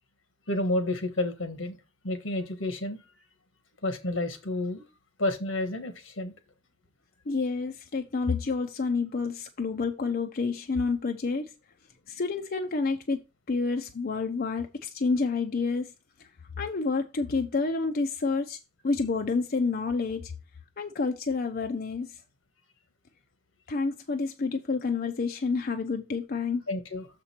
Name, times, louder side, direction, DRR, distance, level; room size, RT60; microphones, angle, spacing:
voice 1, 0.5-1.8 2.0-3.0 3.8-4.8 5.2-6.3 26.7-27.1, left 1 dB, 85° left, 1.4 m, -30 dB
voice 2, 7.3-11.5 12.1-13.2 13.5-15.9 16.6-18.6 18.8-20.3 20.8-22.1 23.7-26.6, left 4 dB, 50° left, 0.6 m, -29 dB
6.8 x 5.1 x 4.4 m
head